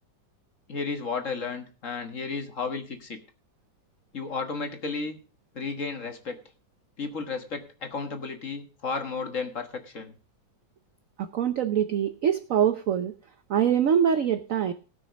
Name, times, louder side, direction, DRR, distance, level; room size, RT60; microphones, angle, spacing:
voice 1, 0.7-3.2 4.1-5.2 5.5-6.4 7.0-10.1, left 4 dB, 45° left, 6 dB, 1.6 m, -33 dB
voice 2, 11.2-13.1 13.5-14.7, right 8 dB, 65° right, 11 dB, 0.8 m, -24 dB
17.5 x 6.2 x 5.2 m, 0.36 s
omnidirectional pair, 2.1 m